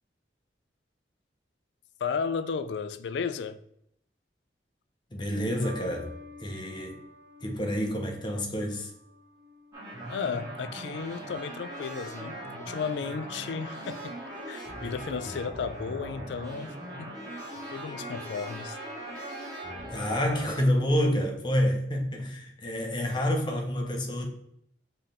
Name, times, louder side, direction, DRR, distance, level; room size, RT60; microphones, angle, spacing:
voice 1, 2.0-3.6 10.1-14.2 14.5-17.1 17.7-18.8, left 6 dB, 80° left, 0.3 m, -34 dB
voice 2, 5.1-7.0 7.4-8.9 19.9-24.3, equal, 25° left, 0.8 m, -28 dB
sound 1, 5.6-12.1 13.0-13.4, left 1 dB, 50° right, 0.7 m, -50 dB
sound 2, 9.7-20.6, right 1 dB, 20° right, 1.8 m, -40 dB
4.4 x 3.2 x 3.6 m
head